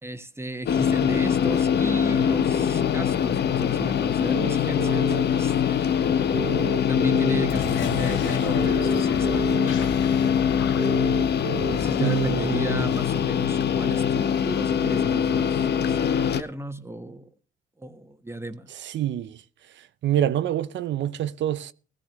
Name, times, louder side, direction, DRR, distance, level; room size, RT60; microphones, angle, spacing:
voice 1, 0.0-6.0 6.9-10.0 11.5-17.3 17.8-18.7, right 1 dB, 10° right, 1.2 m, -35 dB
sound 1, 0.7-16.4, left 8 dB, 55° left, 0.9 m, -23 dB
sound 2, 4.3-5.2 6.3-7.5 8.6-9.7 10.8-11.7, right 7 dB, 35° right, 1.4 m, -32 dB
sound 3, 7.5-12.5, left 6 dB, 75° left, 1.5 m, -36 dB
voice 2, 12.0-12.9 18.8-19.4 20.0-21.7, right 11 dB, 65° right, 0.7 m, -26 dB
17.0 x 14.5 x 3.1 m
cardioid pair, 90°, 20 cm